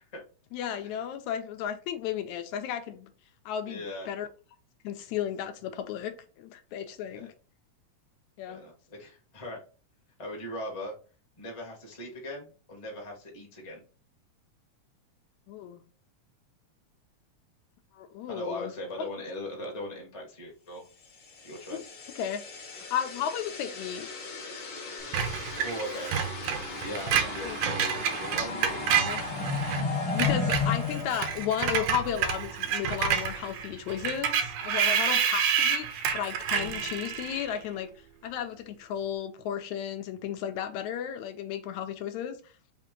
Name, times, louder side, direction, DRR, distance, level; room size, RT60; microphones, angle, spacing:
voice 1, 0.5-3.1 3.5-4.3 4.8-7.3 8.4-8.6 15.5-15.8 17.9-18.7 19.0-19.1 21.7-21.8 22.2-24.1 27.4-27.6 29.0-29.2 30.1-37.9 38.2-42.4, left 9 dB, 85° left, 1.9 m, -34 dB
voice 2, 3.7-4.1 7.1-7.3 8.5-8.7 9.0-9.6 10.2-10.9 11.4-13.8 18.3-20.8 21.4-21.9 25.6-26.1 26.8-28.9, left 1 dB, 25° left, 0.7 m, -39 dB
sound 1, 21.4-32.1, left 4 dB, 55° left, 1.3 m, -35 dB
Screech, 25.1-29.8 30.1-37.5, right 8 dB, 85° right, 2.1 m, -29 dB
5.0 x 2.8 x 3.7 m
omnidirectional pair, 3.4 m